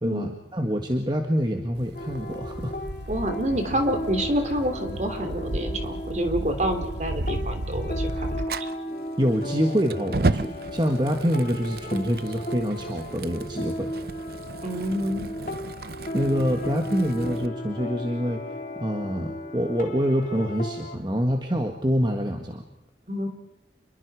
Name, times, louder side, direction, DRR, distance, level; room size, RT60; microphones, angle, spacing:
voice 1, 0.0-2.7 9.2-13.9 16.1-18.4 18.8-22.6, equal, 25° right, 3 dB, 1.8 m, -26 dB
sound 1, 1.8-8.5, right 1 dB, 75° right, 1.2 m, -34 dB
sound 2, 1.9-21.0, equal, 45° left, 2.6 m, -35 dB
voice 2, 3.1-8.4 14.6-15.2 23.1-23.3, equal, 40° right, 6 dB, 3.2 m, -27 dB
Fire, 8.4-17.5, right 3 dB, 55° right, 0.7 m, -34 dB
28.5 x 22.5 x 4.9 m, 0.91 s
head